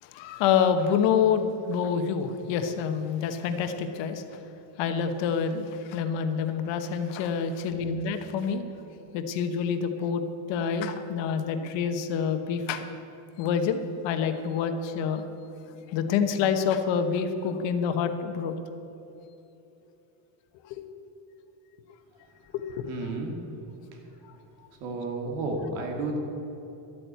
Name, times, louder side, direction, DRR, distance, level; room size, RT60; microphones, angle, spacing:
voice 1, 0.0-4.4 4.8-8.6 9.1-10.2 10.5-12.9 13.4-15.2 15.8-18.6 20.7-20.8 22.5-22.9, left 7 dB, 60° left, 8 dB, 1.2 m, -27 dB
voice 2, 22.9-23.3 24.8-26.2, right 2 dB, 80° right, 2 dB, 2.7 m, -31 dB
12.5 x 8.9 x 8.2 m, 2.9 s
cardioid pair, 175°, 49 cm